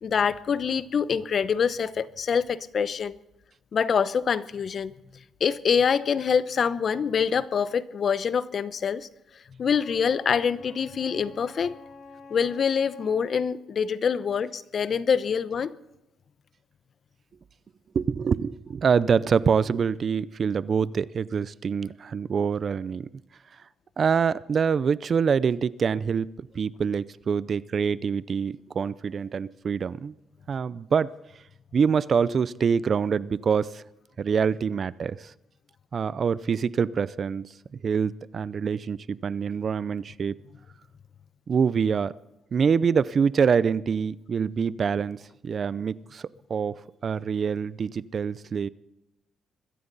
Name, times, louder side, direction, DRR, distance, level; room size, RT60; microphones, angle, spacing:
voice 1, 0.0-3.2 3.7-4.9 5.4-9.1 9.6-11.7 12.3-15.7, left 6 dB, 50° left, 0.8 m, -25 dB
Wind instrument woodwind instrument, 9.7-13.2, left 3 dB, 85° left, 5.7 m, -47 dB
voice 2, 17.9-23.1 24.0-30.1 30.5-31.2 31.7-33.8 34.2-35.3 35.9-37.5 37.8-40.3 41.5-42.1 42.5-45.2 45.4-48.7, right 6 dB, 45° right, 0.5 m, -25 dB
22.0 x 15.5 x 4.1 m
cardioid pair, 90°, 0 cm